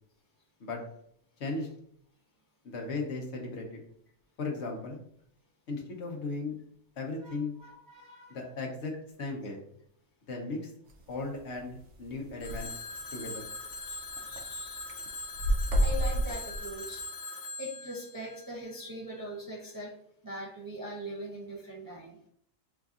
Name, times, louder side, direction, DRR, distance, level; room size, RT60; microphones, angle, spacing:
voice 1, 2.6-3.8 4.4-5.0 5.7-6.6 7.0-7.5 8.3-8.9 9.2-9.6 10.3-10.7 11.1-12.7 13.1-13.5, left 3 dB, 60° left, 0 dB, 1.1 m, -36 dB
voice 2, 7.6-8.4 13.9-14.8 15.8-17.0 17.6-19.9 20.2-22.2, equal, 30° right, -3 dB, 0.4 m, -41 dB
sound 1, 10.9-11.1 11.6-11.7 11.9-12.0 12.2-12.6 13.2-13.3 13.7-14.4 14.8-17.0, equal, 65° right, 0.8 m, -29 dB
Telephone, 12.4-19.2, left 3 dB, 90° left, 1.1 m, -42 dB
5.8 x 2.6 x 2.4 m, 0.68 s
omnidirectional pair, 1.4 m